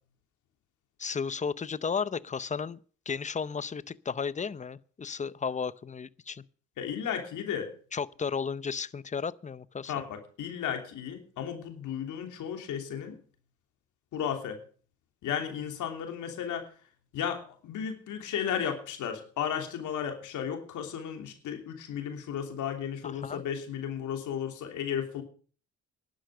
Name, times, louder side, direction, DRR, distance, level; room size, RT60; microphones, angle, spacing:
voice 1, 1.0-2.8 3.1-6.4 7.9-9.9 23.0-23.4, left 6 dB, 25° left, 0.6 m, -34 dB
voice 2, 6.8-7.7 9.9-13.2 14.1-14.6 15.2-16.7 17.1-25.2, left 8 dB, 80° left, 3.2 m, -34 dB
11.5 x 10.0 x 6.8 m
cardioid pair, 90°, 30 cm